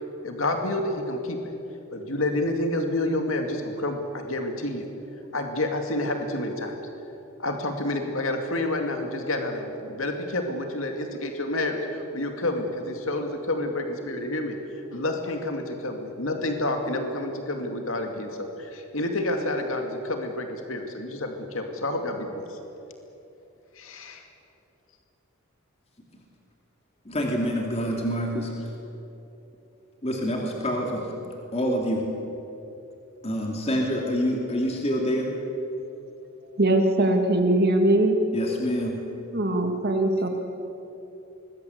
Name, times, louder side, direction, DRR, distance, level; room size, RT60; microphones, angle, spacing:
voice 1, 0.2-1.5 1.9-4.9 5.3-6.8 7.4-14.6 14.9-22.6 23.8-24.3, left 1 dB, 70° left, 4 dB, 2.4 m, -29 dB
voice 2, 27.0-28.7 30.0-31.1 31.5-32.1 33.2-35.3 38.3-39.0 40.2-40.3, equal, 30° left, 0 dB, 2.8 m, -27 dB
voice 3, 36.6-38.2 39.3-40.3, right 1 dB, 50° right, 4 dB, 2.5 m, -21 dB
24.5 x 21.0 x 8.0 m, 2.9 s
head